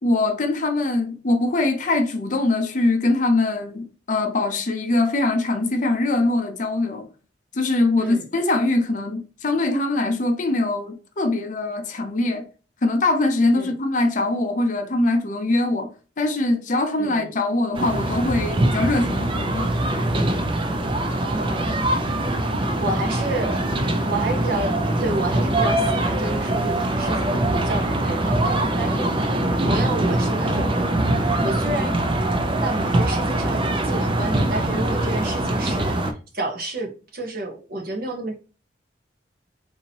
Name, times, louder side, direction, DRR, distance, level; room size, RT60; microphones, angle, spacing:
voice 1, 0.0-7.1 7.5-12.4 12.8-19.8, left 2 dB, 45° left, 0.6 m, -22 dB
voice 2, 17.0-17.3 20.9-21.8 22.8-23.7 24.0-29.3 29.6-30.9 31.4-32.2 32.6-38.4, right 2 dB, 55° right, 1.0 m, -30 dB
sound 1, 17.7-36.1, right 1 dB, 30° right, 0.4 m, -23 dB
3.8 x 2.8 x 2.8 m
head